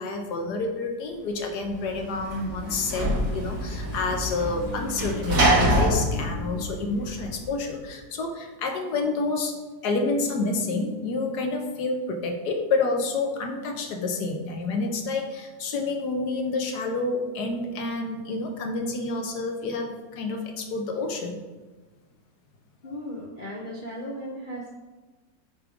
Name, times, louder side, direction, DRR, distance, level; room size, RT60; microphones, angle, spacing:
voice 1, 0.0-9.5 9.8-21.4, left 3 dB, 80° left, 4 dB, 1.4 m, -29 dB
Sliding door / Slam, 1.6-7.5, right 1 dB, 85° right, 2.6 m, -26 dB
voice 2, 22.8-24.7, equal, 45° left, -3 dB, 0.7 m, -36 dB
8.6 x 4.8 x 3.6 m, 1.3 s
omnidirectional pair, 1.7 m